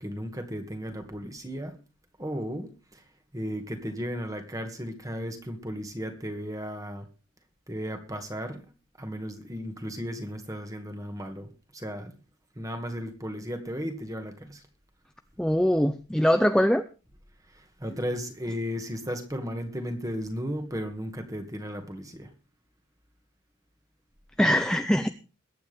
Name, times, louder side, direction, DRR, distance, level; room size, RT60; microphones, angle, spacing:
voice 1, 0.0-1.8 2.2-3.0 3.3-7.0 7.7-8.6 9.0-12.1 12.6-14.6 17.8-22.3, equal, 15° right, 6 dB, 2.2 m, -35 dB
voice 2, 15.4-16.8 24.4-25.1, equal, 5° left, 9 dB, 0.6 m, -22 dB
22.0 x 9.1 x 3.6 m, 0.33 s
head